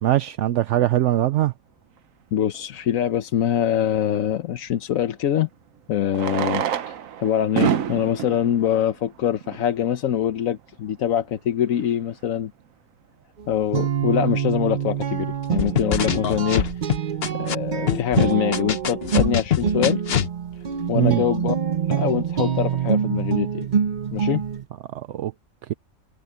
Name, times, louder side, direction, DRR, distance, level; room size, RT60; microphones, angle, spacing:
voice 1, 0.0-1.5 20.9-21.2 24.9-25.3, right 13 dB, 70° right, 0.9 m, -21 dB
voice 2, 2.3-5.5 5.9-12.5 13.5-16.6 17.3-20.0 20.9-21.5 21.9-23.6 24.1-24.4, left 10 dB, 90° left, 1.2 m, -24 dB
Fireworks, 2.5-2.6 4.9-5.0 6.1-9.8 10.6-10.7 10.9-11.0 11.2-11.3 11.8-12.0, right 8 dB, 85° right, 1.3 m, -28 dB
Guitar, 13.4-24.6, right 7 dB, 45° right, 0.7 m, -25 dB
sound 1, 15.6-17.5 17.9-20.3, left 8 dB, 50° left, 1.0 m, -23 dB
omnidirectional pair, 1.4 m